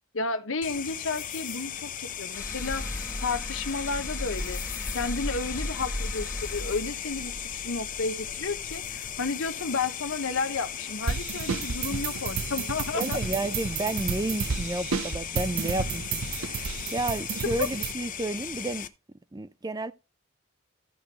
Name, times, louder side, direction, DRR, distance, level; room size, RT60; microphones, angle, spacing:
voice 1, 0.1-4.6 4.9-13.2 17.6-17.7, left 4 dB, 65° left, 1.0 m, -32 dB
sound 1, 0.6-18.9, left 9 dB, 35° left, 0.7 m, -37 dB
sound 2, 2.3-9.5, left 1 dB, 15° left, 1.0 m, -37 dB
sound 3, 11.1-17.9, right 5 dB, 75° right, 0.9 m, -32 dB
voice 2, 12.9-18.9 19.3-19.9, right 2 dB, 15° right, 0.4 m, -31 dB
15.0 x 5.3 x 2.9 m
head